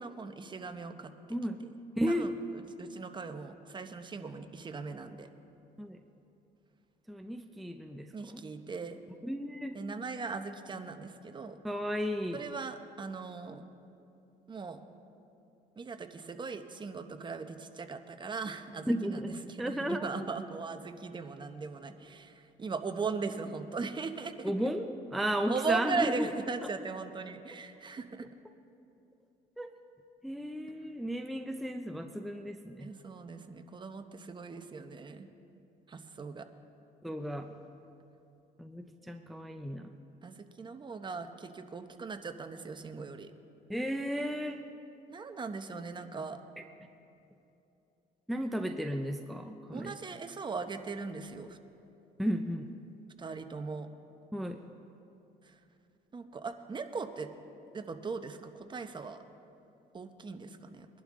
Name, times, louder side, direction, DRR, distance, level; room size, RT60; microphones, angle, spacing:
voice 1, 0.0-1.1 2.1-2.3 2.8-5.3 8.1-9.0 9.7-11.6 12.3-13.6 14.5-14.8 15.8-24.5 25.5-28.3 32.8-35.3 35.9-36.5 40.2-43.3 45.1-46.4 49.7-51.6 53.2-53.9 55.4-55.5 56.1-57.3 57.7-59.2 59.9-60.9, right 4 dB, 25° right, 8 dB, 0.8 m, -39 dB
voice 2, 1.3-1.6 2.0-2.3 5.8-6.0 7.1-8.4 9.2-9.8 11.6-12.4 18.9-20.3 24.4-26.3 29.6-29.7 30.2-32.9 37.0-37.6 38.6-39.9 43.7-44.6 48.3-50.0 52.2-52.7 54.3-54.6, equal, ahead, 5 dB, 0.5 m, -34 dB
22.0 x 11.5 x 3.7 m, 2.7 s
cardioid pair, 110°, 17 cm